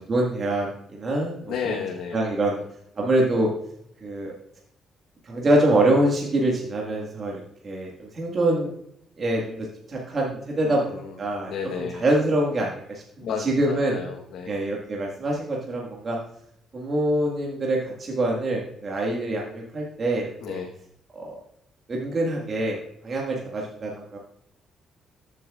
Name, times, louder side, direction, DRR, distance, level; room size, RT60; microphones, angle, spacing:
voice 1, 0.1-1.8 2.1-2.6 3.0-3.5 4.0-4.3 5.3-7.3 7.6-8.7 9.2-10.8 11.2-12.7 13.4-14.0 14.5-16.2 16.7-20.6 21.1-21.4 21.9-22.8 23.0-24.2, right 1 dB, 45° right, -3 dB, 1.7 m, -25 dB
voice 2, 1.5-2.2 2.6-2.7 10.6-11.2 11.5-12.0 13.2-14.5 20.4-20.7, left 6 dB, 85° left, 0 dB, 1.1 m, -32 dB
13.5 x 7.5 x 2.4 m, 0.73 s
cardioid pair, 90°, 0 cm